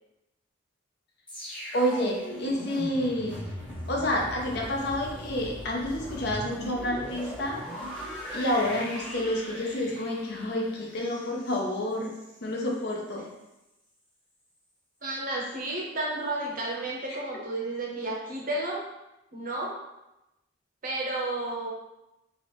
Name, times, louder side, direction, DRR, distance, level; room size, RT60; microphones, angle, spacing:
sound 1, 1.3-12.4 12.7-12.9, equal, 5° left, 0.9 m, -39 dB
voice 1, 1.7-3.3 3.9-7.6 8.3-12.1 12.4-13.2 17.1-17.2, left 1 dB, 60° left, -1 dB, 0.7 m, -29 dB
voice 2, 15.0-18.8 19.3-19.7 20.8-21.7, right 2 dB, 45° right, -2 dB, 0.8 m, -32 dB
2.9 x 2.4 x 3.4 m, 0.93 s
head